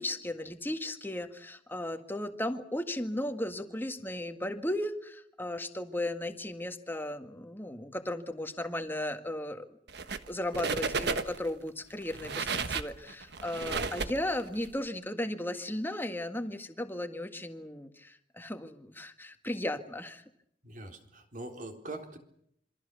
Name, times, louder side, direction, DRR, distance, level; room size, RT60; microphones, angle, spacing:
voice 1, 0.0-9.8 10.3-20.2, left 1 dB, 10° left, 7 dB, 1.8 m, -36 dB
sound 1, 9.9-10.3 10.5-11.5 12.0-14.7, right 4 dB, 65° right, 1.3 m, -33 dB
voice 2, 20.6-22.2, right 2 dB, 45° right, 4 dB, 3.7 m, -43 dB
27.0 x 23.5 x 6.9 m, 0.73 s
head